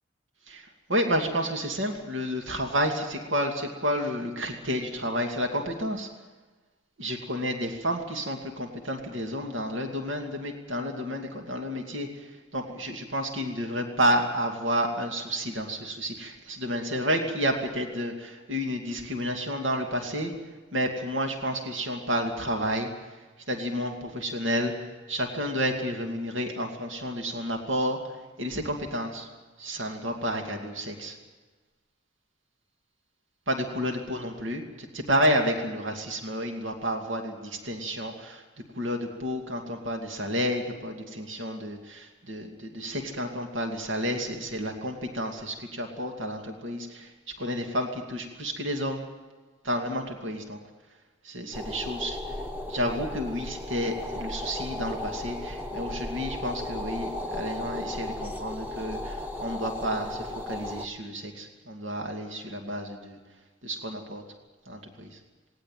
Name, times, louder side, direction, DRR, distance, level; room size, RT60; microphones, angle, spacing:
voice 1, 0.5-6.1 7.0-12.3 12.5-20.3 20.7-22.9 23.5-28.0 28.4-29.3 29.6-31.1 33.5-38.4 38.8-49.0 49.6-50.6 51.2-52.2 52.7-63.2 63.6-64.2 64.7-65.2, equal, 80° right, 3 dB, 2.5 m, -30 dB
sound 1, 51.5-60.9, left 1 dB, 10° right, 1.1 m, -35 dB
19.0 x 18.5 x 9.2 m, 1.3 s
head